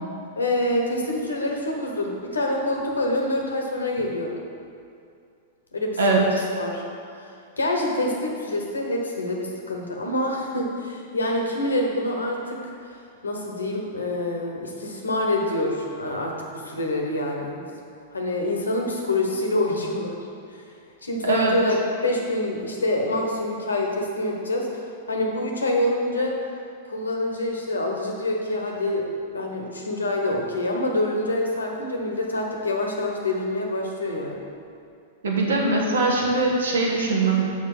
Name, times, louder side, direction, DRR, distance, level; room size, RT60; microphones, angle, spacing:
voice 1, 0.4-4.3 5.7-6.8 7.2-12.6 13.2-17.6 18.1-20.2 20.5-20.6 21.0-21.8 22.0-24.8 25.1-26.4 26.9-29.0 29.3-34.4, left 1 dB, 85° left, 0 dB, 1.2 m, -26 dB
voice 2, 21.2-21.6 35.2-37.5, right 3 dB, 75° right, -1 dB, 1.4 m, -21 dB
6.7 x 5.6 x 5.0 m, 2.4 s
hypercardioid pair, 100°, 0 cm